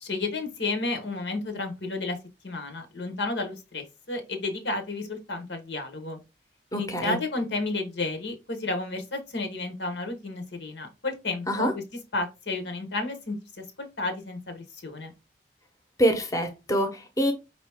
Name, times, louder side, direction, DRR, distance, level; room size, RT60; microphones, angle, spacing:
voice 1, 0.0-2.2 2.4-6.2 6.7-11.8 12.1-13.4 13.8-15.1, left 3 dB, 85° left, 1.3 m, -32 dB
voice 2, 6.7-7.2 11.5-11.7 16.0-17.3, equal, 20° left, 0.8 m, -25 dB
5.2 x 3.0 x 3.5 m
head